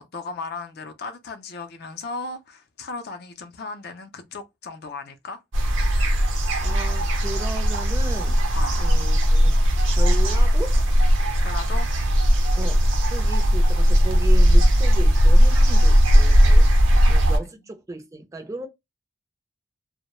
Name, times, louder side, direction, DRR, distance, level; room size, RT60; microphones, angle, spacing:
voice 1, 0.0-5.4 8.5-8.7 11.4-11.9 16.9-17.0 17.3-17.5, left 3 dB, 55° left, 0.4 m, -36 dB
sound 1, 5.5-17.4, equal, 80° right, 0.6 m, -17 dB
voice 2, 6.3-8.4 8.8-9.6 9.9-10.8 12.6-16.7 17.1-18.7, right 2 dB, 15° right, 0.4 m, -35 dB
2.2 x 2.0 x 2.9 m
head